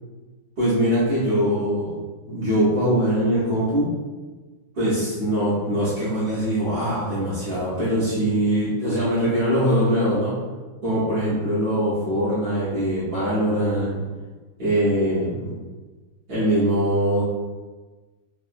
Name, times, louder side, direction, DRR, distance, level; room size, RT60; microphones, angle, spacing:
voice 1, 0.6-2.0 2.3-3.9 4.7-10.3 10.8-14.0 14.6-15.6 16.3-17.2, equal, 55° right, -11 dB, 1.2 m, -22 dB
3.6 x 2.3 x 2.5 m, 1.3 s
omnidirectional pair, 2.4 m